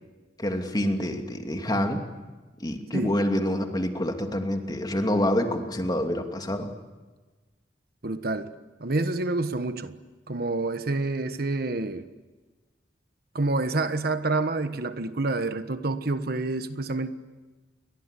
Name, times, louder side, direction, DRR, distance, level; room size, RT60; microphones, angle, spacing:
voice 1, 0.4-2.1 2.6-6.7, left 1 dB, 25° left, 4 dB, 2.7 m, -27 dB
voice 2, 8.0-8.5 8.8-10.0 10.3-12.0 13.3-17.1, right 2 dB, 60° right, 10 dB, 1.3 m, -28 dB
30.0 x 23.0 x 8.4 m, 1.3 s
head